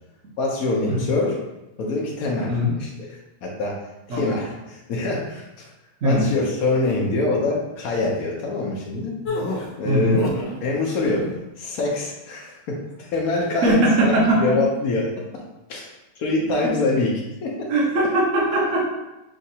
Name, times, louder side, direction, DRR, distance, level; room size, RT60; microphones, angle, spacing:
voice 1, 0.4-1.3 1.8-2.9 3.4-3.8 4.1-5.4 6.0-9.1 9.8-10.3 10.6-11.3 11.6-14.1 14.4-15.1 15.7-15.9 16.2-17.1 17.4-17.7, left 2 dB, 65° left, -3 dB, 1.1 m, -24 dB
sound 1, 9.2-10.6 10.9-11.4, left 2 dB, 85° left, 1.4 m, -29 dB
voice 2, 9.8-10.2 13.6-14.6 17.7-18.8, right 1 dB, 55° right, -3 dB, 1.3 m, -20 dB
6.2 x 2.5 x 2.8 m, 0.99 s
omnidirectional pair, 1.8 m